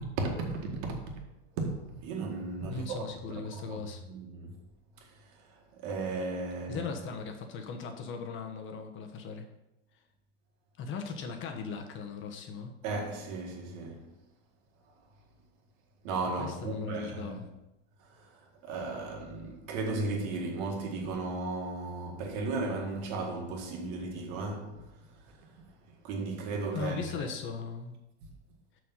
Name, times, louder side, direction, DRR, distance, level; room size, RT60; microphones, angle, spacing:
voice 1, 0.2-1.0 1.6-3.8 4.0-4.6 5.0-5.1 5.5-6.9 12.8-14.1 16.0-17.5 18.0-18.3 18.6-24.9 25.3-25.5 26.0-27.3, right 3 dB, 55° right, 2.0 m, -35 dB
voice 2, 2.6-4.0 6.7-9.5 10.8-12.7 16.4-17.5 26.7-28.0, left 5 dB, 35° left, 1.3 m, -38 dB
6.2 x 5.9 x 5.7 m
supercardioid pair, 125°, 35 cm